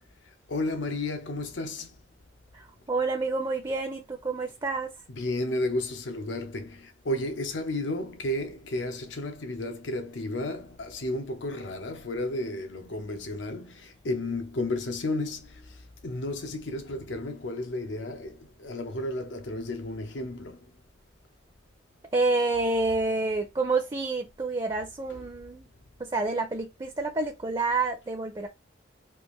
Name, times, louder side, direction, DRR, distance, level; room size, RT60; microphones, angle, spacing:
voice 1, 0.5-2.0 5.1-20.7 25.1-25.2, left 1 dB, 80° left, 0.7 m, -33 dB
voice 2, 2.5-4.9 22.1-25.7 26.0-28.5, right 3 dB, 25° right, 0.5 m, -28 dB
3.4 x 2.5 x 3.1 m
head